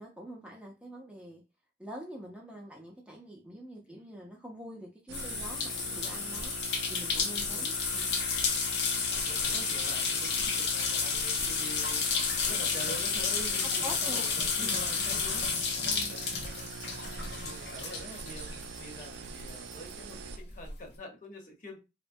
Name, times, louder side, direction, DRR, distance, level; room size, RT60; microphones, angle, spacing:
voice 1, 0.0-1.4 1.8-6.5 6.9-8.2 13.6-14.3 14.6-14.8 15.8-16.1, equal, 5° right, 0.5 m, -45 dB
sound 1, 5.1-19.2 19.5-20.7, left 5 dB, 75° left, 0.6 m, -31 dB
sound 2, 5.1-20.4, right 6 dB, 90° right, 0.3 m, -43 dB
voice 2, 7.3-7.7 9.1-15.8 16.1-16.4 17.1-21.8, left 1 dB, 50° left, 0.8 m, -46 dB
3.0 x 2.1 x 2.6 m
head